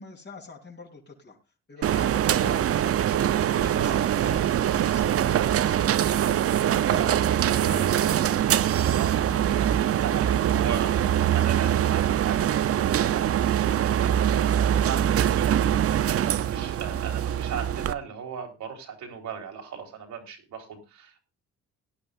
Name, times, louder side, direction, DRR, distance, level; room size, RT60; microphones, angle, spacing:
voice 1, 0.0-1.4 1.7-6.6 6.9-8.5 16.9-17.0, left 4 dB, 35° left, 2 dB, 3.5 m, -45 dB
sound 1, 1.8-17.9, right 10 dB, 50° right, 0.6 m, -23 dB
voice 2, 6.6-7.3 8.7-15.8 16.2-21.2, right 7 dB, 75° right, 1 dB, 3.4 m, -38 dB
18.0 x 10.5 x 2.5 m, 0.27 s
cardioid pair, 90°, 30 cm